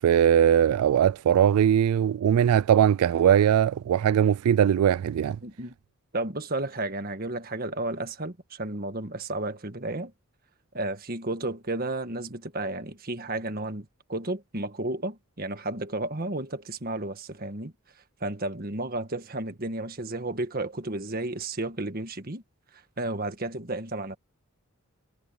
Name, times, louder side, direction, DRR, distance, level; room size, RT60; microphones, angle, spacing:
voice 1, 0.0-5.4, right 9 dB, 85° right, 0.3 m, -20 dB
voice 2, 5.4-5.7 6.1-10.1 10.7-17.7 18.2-22.4 23.0-24.2, right 2 dB, 45° right, 1.6 m, -32 dB
head